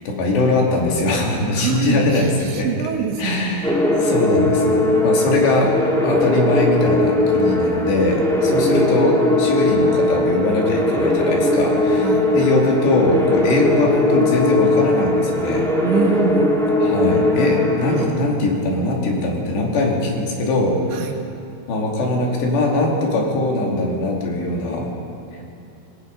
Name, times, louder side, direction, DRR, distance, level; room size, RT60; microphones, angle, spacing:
voice 1, 0.1-2.7 3.2-5.8 6.0-15.7 16.8-20.8 21.7-24.9, left 2 dB, 70° left, -1 dB, 4.8 m, -21 dB
voice 2, 1.6-3.5 8.6-8.7 12.0-12.4 15.8-16.6 20.9-21.2, right 6 dB, 80° right, 4 dB, 3.7 m, -25 dB
sound 1, 3.6-18.1, left 1 dB, ahead, 0.9 m, -19 dB
27.5 x 18.5 x 5.4 m, 2.6 s
omnidirectional pair, 5.1 m